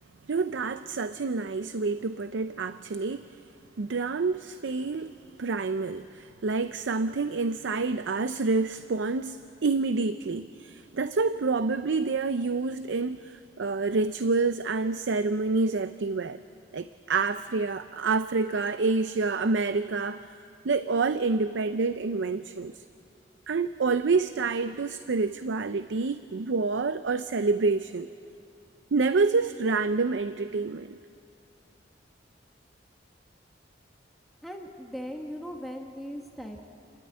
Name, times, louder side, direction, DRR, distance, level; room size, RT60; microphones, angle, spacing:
voice 1, 0.3-3.4 3.8-16.4 16.7-20.3 20.6-22.8 23.5-28.1 28.9-31.0, right 4 dB, 85° right, 0.5 m, -28 dB
voice 2, 34.4-36.7, equal, ahead, 1.2 m, -39 dB
29.0 x 13.0 x 9.5 m
head